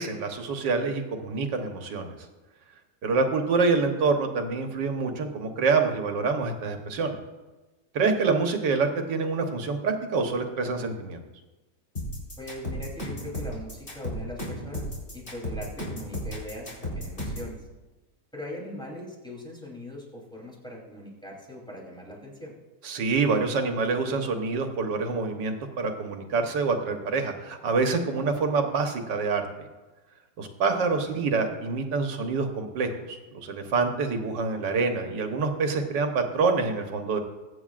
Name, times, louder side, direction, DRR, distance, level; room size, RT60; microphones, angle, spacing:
voice 1, 0.0-2.2 3.0-7.2 7.9-11.2 22.8-29.5 30.4-37.2, right 4 dB, 75° right, 5 dB, 1.8 m, -26 dB
sound 1, 12.0-17.5, left 1 dB, 35° left, 4.1 m, -34 dB
voice 2, 12.4-17.7 18.3-22.5 31.0-31.1, left 1 dB, ahead, -4 dB, 3.2 m, -41 dB
22.0 x 9.1 x 2.5 m, 1.1 s
omnidirectional pair, 1.9 m